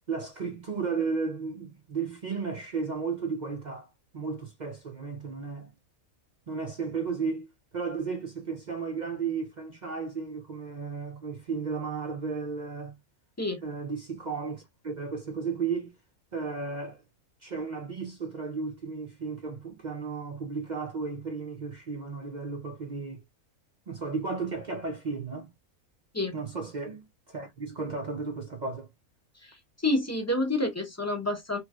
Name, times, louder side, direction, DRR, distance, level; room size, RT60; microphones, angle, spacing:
voice 1, 0.1-5.7 6.5-13.0 13.6-15.9 16.3-17.0 17.4-23.2 23.9-25.5 26.3-28.9, right 5 dB, 50° right, 0.5 m, -34 dB
voice 2, 29.4-31.6, left 2 dB, 15° left, 0.5 m, -29 dB
3.2 x 3.0 x 2.2 m
omnidirectional pair, 1.5 m